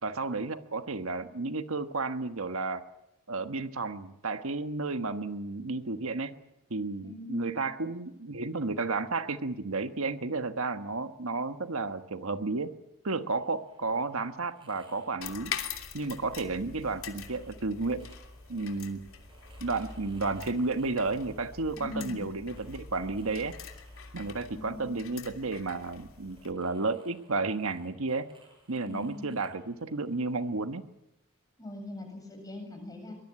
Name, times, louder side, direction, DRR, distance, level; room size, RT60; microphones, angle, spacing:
voice 1, 0.0-2.9 3.3-6.3 6.7-12.7 13.0-15.5 15.9-18.0 18.5-19.1 19.6-23.6 24.1-28.3 28.7-30.8, right 3 dB, 75° right, 9 dB, 1.3 m, -32 dB
voice 2, 7.0-7.6 21.8-22.3 24.5-25.0 28.8-29.3 31.6-33.2, left 2 dB, 15° left, 3 dB, 7.7 m, -41 dB
sound 1, 13.0-30.6, right 1 dB, 25° right, 7.7 m, -62 dB
sound 2, 15.2-26.5, left 6 dB, 75° left, 2.9 m, -44 dB
23.5 x 21.5 x 9.9 m, 0.87 s
head